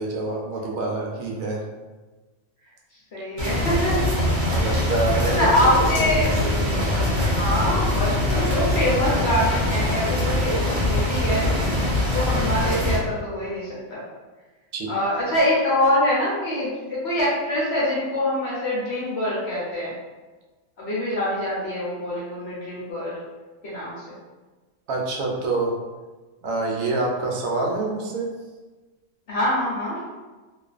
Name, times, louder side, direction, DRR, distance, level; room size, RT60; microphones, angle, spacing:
voice 1, 0.0-1.6 4.3-5.5 5.8-6.9 14.7-14.9 24.9-25.7 26.4-28.3, right 2 dB, 75° right, -1 dB, 1.0 m, -27 dB
voice 2, 3.1-4.0 5.4-6.3 7.3-11.4 11.9-14.0 14.9-20.0 20.8-23.2 23.6-24.1 29.3-30.0, left 1 dB, 55° left, -7 dB, 0.8 m, -24 dB
sound 1, 3.4-13.0, left 1 dB, 50° right, 0.6 m, -23 dB
2.4 x 2.4 x 2.4 m, 1.2 s
omnidirectional pair, 1.5 m